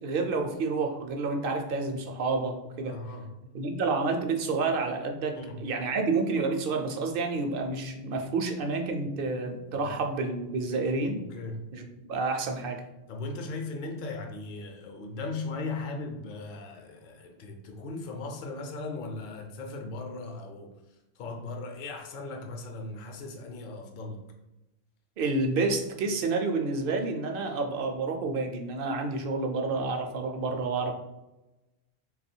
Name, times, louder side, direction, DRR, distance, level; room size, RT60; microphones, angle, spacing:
voice 1, 0.0-3.0 3.5-11.2 11.7-12.8 25.2-30.9, right 3 dB, 65° right, 5 dB, 0.7 m, -29 dB
voice 2, 2.8-3.3 5.3-5.7 9.7-10.0 11.3-11.7 13.1-24.3, left 3 dB, 60° left, 3 dB, 0.7 m, -38 dB
3.2 x 2.3 x 4.3 m, 0.97 s
omnidirectional pair, 1.1 m